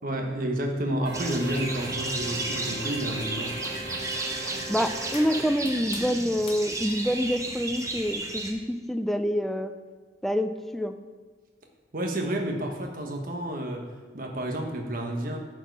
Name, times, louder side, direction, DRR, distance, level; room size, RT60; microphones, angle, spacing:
voice 1, 0.0-3.5 11.9-13.8 14.1-15.4, right 1 dB, 50° right, 2 dB, 1.2 m, -30 dB
sound 1, 1.1-8.5, right 2 dB, 15° right, 0.7 m, -33 dB
sound 2, 1.1-5.4, right 2 dB, 85° right, 1.5 m, -38 dB
sound 3, 3.4-8.1, left 5 dB, 30° left, 0.8 m, -50 dB
voice 2, 4.7-9.7 10.2-10.9, equal, ahead, 8 dB, 0.4 m, -27 dB
10.5 x 4.7 x 4.7 m, 1.4 s
head